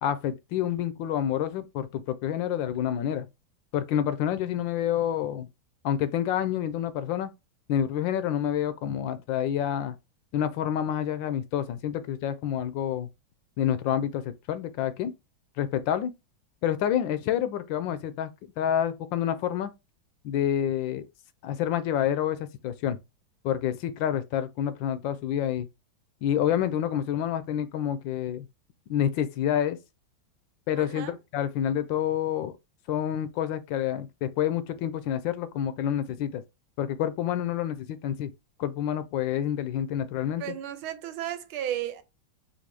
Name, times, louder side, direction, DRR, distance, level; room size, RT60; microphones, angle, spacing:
voice 1, 0.0-3.3 3.7-5.5 5.8-7.3 7.7-9.9 10.3-13.1 13.6-15.1 15.6-16.1 16.6-18.3 18.6-19.7 20.2-21.1 21.4-23.0 23.4-25.7 26.2-28.5 28.9-29.8 30.7-32.5 32.9-36.4 36.8-38.3 38.6-40.5, left 10 dB, 75° left, 1.2 m, -28 dB
voice 2, 30.7-31.2 40.4-42.0, right 11 dB, 90° right, 1.5 m, -34 dB
4.2 x 2.6 x 4.6 m
omnidirectional pair, 2.2 m